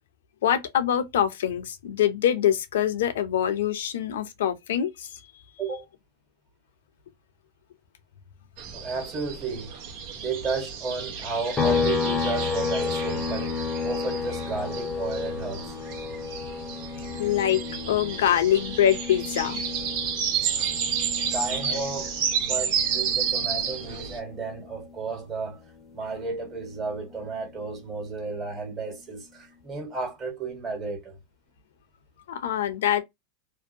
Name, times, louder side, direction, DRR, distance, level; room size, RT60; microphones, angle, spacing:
voice 1, 0.4-5.1 17.2-17.6 17.9-19.6 21.7-21.8 32.3-33.0, left 10 dB, 80° left, 0.6 m, -24 dB
sound 1, 8.6-24.2, right 8 dB, 65° right, 0.9 m, -31 dB
voice 2, 8.7-9.8 10.2-13.6 13.8-15.8 21.3-25.6 25.9-31.2, right 4 dB, 25° right, 1.4 m, -33 dB
sound 2, 11.6-25.1 25.5-27.7, left 5 dB, 25° left, 0.6 m, -32 dB
2.7 x 2.2 x 2.6 m
hypercardioid pair, 115°, 0 cm